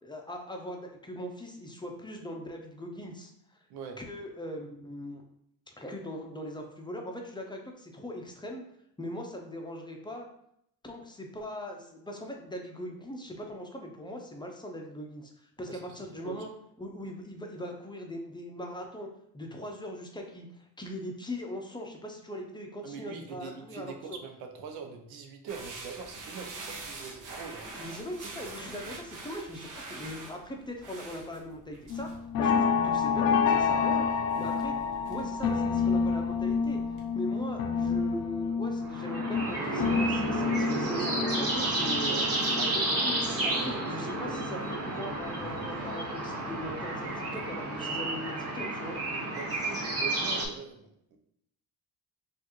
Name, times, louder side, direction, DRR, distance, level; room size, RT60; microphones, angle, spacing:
voice 1, 0.0-3.6 4.0-5.2 5.8-8.6 9.0-10.3 10.8-16.5 16.8-19.1 19.3-24.2 27.7-32.1 32.4-34.7 35.1-36.8 37.1-42.3 42.6-43.2 43.4-49.0, left 1 dB, 10° left, 1 dB, 0.6 m, -40 dB
voice 2, 16.1-16.5 22.8-27.7 43.9-44.0 49.2-51.2, right 5 dB, 90° right, 4 dB, 0.7 m, -43 dB
sound 1, 25.5-37.1, right 3 dB, 60° right, 0.9 m, -46 dB
sound 2, 31.9-44.0 44.4-46.0 46.4-46.7 47.0-47.1, left 6 dB, 70° left, 0.6 m, -29 dB
sound 3, 38.8-50.4, right 2 dB, 40° right, 1.1 m, -31 dB
4.4 x 2.5 x 3.0 m, 0.73 s
cardioid pair, 100°, 36 cm